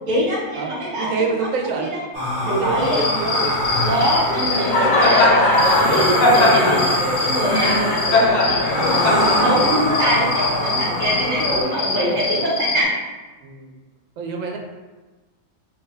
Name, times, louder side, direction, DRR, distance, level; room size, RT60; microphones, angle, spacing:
voice 1, 0.1-1.5 1.8-2.0 2.4-3.0 3.8-12.9, right 1 dB, 45° right, -6 dB, 0.9 m, -23 dB
voice 2, 1.0-2.0 2.4-3.6 4.0-4.1 4.6-4.7 7.2-7.5 8.5-9.1 11.6-12.4 13.4-13.7 14.2-14.6, right 5 dB, 80° right, 2 dB, 1.0 m, -28 dB
sound 1, 2.1-11.6, left 1 dB, 45° left, 1.3 m, -24 dB
Cricket, 2.8-12.8, left 2 dB, 85° left, 0.4 m, -20 dB
3.3 x 2.2 x 3.3 m, 1.2 s
omnidirectional pair, 1.3 m